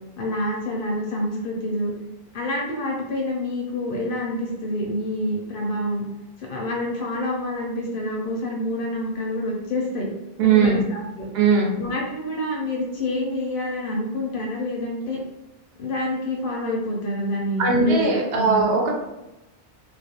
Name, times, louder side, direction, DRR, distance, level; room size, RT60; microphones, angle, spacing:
voice 1, 0.2-1.9 2.3-6.0 6.4-10.1 10.4-11.3 11.8-15.2 15.8-18.6, left 1 dB, 60° left, -1 dB, 0.6 m, -27 dB
voice 2, 10.4-10.8 11.3-11.7 17.6-18.9, right 5 dB, 65° right, -1 dB, 0.7 m, -19 dB
2.4 x 2.1 x 2.7 m, 0.98 s
omnidirectional pair, 1.1 m